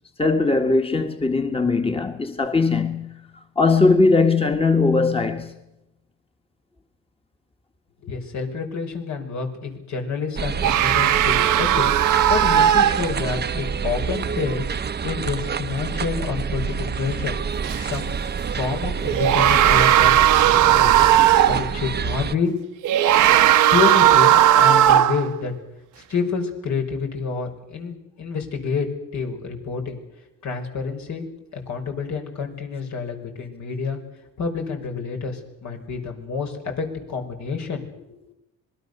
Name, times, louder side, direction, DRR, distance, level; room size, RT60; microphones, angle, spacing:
voice 1, 0.2-3.1 3.6-5.5 17.7-17.9, left 3 dB, 20° left, 1.8 m, -20 dB
voice 2, 8.0-11.8 12.3-14.7 15.0-17.3 17.8-18.1 18.5-21.0 21.5-22.5 23.7-25.5 26.1-28.9 29.1-30.0 30.4-31.3 31.5-34.0 34.4-37.9, left 5 dB, 65° left, 5.6 m, -28 dB
sound 1, 10.4-22.4, right 6 dB, 35° right, 0.8 m, -28 dB
sound 2, 10.6-13.4 17.6-17.8 19.1-21.7 22.8-25.3, right 12 dB, 90° right, 1.1 m, -16 dB
26.5 x 20.5 x 6.9 m
cardioid pair, 90°, 30 cm